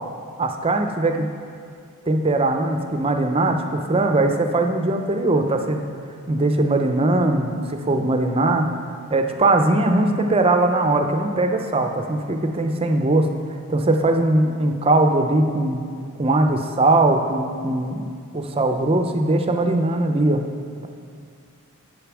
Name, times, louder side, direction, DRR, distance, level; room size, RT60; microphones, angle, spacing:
voice 1, 0.4-1.3 2.1-5.9 6.3-8.7 9.1-13.3 13.7-15.9 16.2-18.1 18.3-20.4, right 2 dB, 25° right, 5 dB, 0.6 m, -20 dB
8.3 x 6.8 x 6.1 m, 2.2 s
head